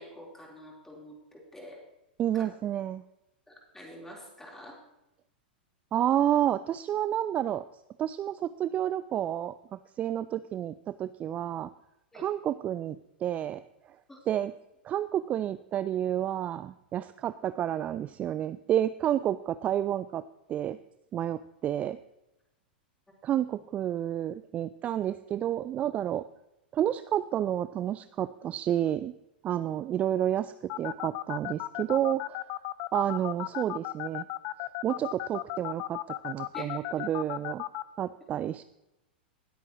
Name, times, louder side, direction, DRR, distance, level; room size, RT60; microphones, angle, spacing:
voice 1, 0.0-1.8 2.3-2.4 3.5-4.8 12.1-12.3 14.1-14.2 36.5-37.1, equal, 5° left, -2 dB, 3.8 m, -47 dB
voice 2, 2.2-3.0 5.9-7.6 8.0-9.5 10.0-11.7 12.1-13.6 14.3-14.5 14.8-20.2 20.5-20.8 21.1-22.0 23.2-26.2 26.7-29.1 29.4-32.4 32.9-34.2 34.8-37.6 38.0-38.6, right 11 dB, 25° right, 14 dB, 0.3 m, -30 dB
sound 1, 30.7-37.8, left 17 dB, 45° left, 0.5 m, -34 dB
19.5 x 8.3 x 3.0 m, 0.91 s
figure-of-eight pair, 100°, 5 cm